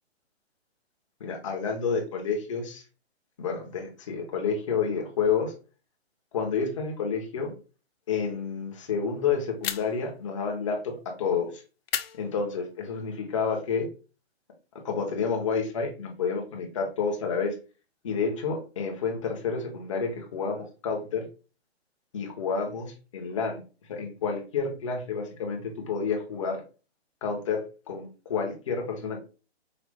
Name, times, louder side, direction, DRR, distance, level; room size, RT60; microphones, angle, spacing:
voice 1, 1.2-2.8 3.4-5.5 6.3-7.5 8.1-11.6 12.2-13.9 14.8-17.5 18.0-21.3 22.1-23.6 23.9-26.6 27.2-29.2, left 5 dB, 30° left, 2 dB, 0.9 m, -29 dB
sound 1, 9.6-10.2 11.9-12.9, left 9 dB, 65° left, 0.5 m, -35 dB
5.0 x 2.4 x 3.4 m, 0.34 s
hypercardioid pair, 170°, 32 cm